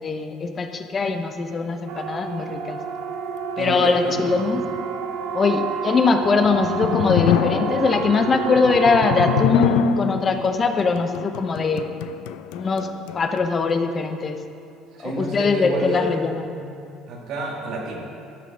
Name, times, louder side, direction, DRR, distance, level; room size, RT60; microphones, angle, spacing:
voice 1, 0.0-2.8 3.6-4.6 5.3-11.8 12.5-12.9 13.1-14.4 15.0-16.6, left 4 dB, 20° left, 6 dB, 0.7 m, -21 dB
Siren, 1.9-9.5, right 7 dB, 85° right, 0.7 m, -29 dB
voice 2, 3.6-4.6 14.9-16.7 17.1-18.0, right 1 dB, 50° right, -2 dB, 2.5 m, -30 dB
sound 1, 6.2-13.5, left 11 dB, 90° left, 0.4 m, -26 dB
13.0 x 8.3 x 6.2 m, 2.4 s
cardioid pair, 175°, 0 cm